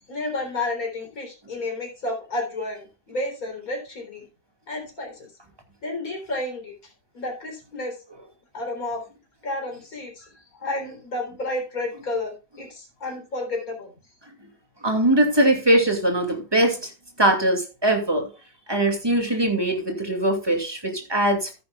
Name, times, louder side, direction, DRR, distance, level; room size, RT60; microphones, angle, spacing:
voice 1, 0.1-4.2 4.7-5.3 5.8-6.7 7.1-8.0 8.5-9.0 9.4-10.3 10.6-13.9, left 2 dB, 60° left, 2 dB, 4.2 m, -31 dB
voice 2, 14.8-16.9 17.2-18.3 18.7-21.5, right 1 dB, 15° right, 4 dB, 2.5 m, -21 dB
13.5 x 10.0 x 2.4 m, 0.30 s
omnidirectional pair, 1.7 m